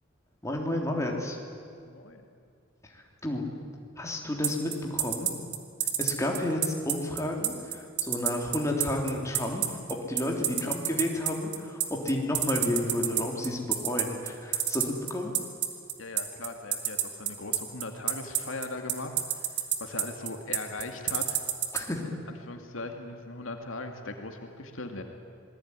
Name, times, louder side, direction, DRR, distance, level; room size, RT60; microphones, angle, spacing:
voice 1, 0.4-1.4 2.8-3.4 4.0-5.3 6.0-15.3 21.7-22.0, left 1 dB, 15° left, 0 dB, 3.4 m, -31 dB
voice 2, 1.7-2.2 10.6-10.7 16.0-19.5 19.8-21.4 22.0-22.1 22.4-25.0, left 2 dB, 75° left, 4 dB, 2.4 m, -39 dB
sound 1, 4.4-21.8, right 12 dB, 60° right, 2.4 m, -27 dB
27.0 x 20.0 x 9.8 m, 2.3 s
head